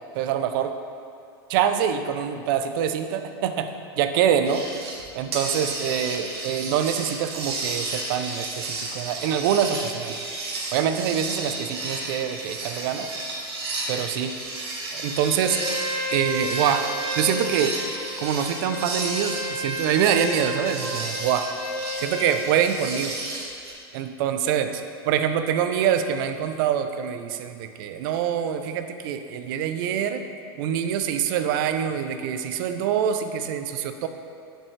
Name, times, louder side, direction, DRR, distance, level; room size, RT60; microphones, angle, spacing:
voice 1, 0.1-0.7 1.5-4.6 5.2-10.2 10.7-13.1 13.9-14.3 14.9-15.6 16.1-16.8 17.1-17.8 18.2-21.5 22.0-23.1 23.9-24.7 25.0-30.2 30.6-34.1, right 8 dB, 60° right, 8 dB, 0.5 m, -25 dB
sound 1, 4.5-5.0 5.3-23.7, right 2 dB, 85° right, 1.3 m, -33 dB
Bowed string instrument, 15.4-22.4, equal, 55° left, 1.3 m, -32 dB
7.5 x 5.2 x 3.2 m, 2.5 s
hypercardioid pair, 120°, 13 cm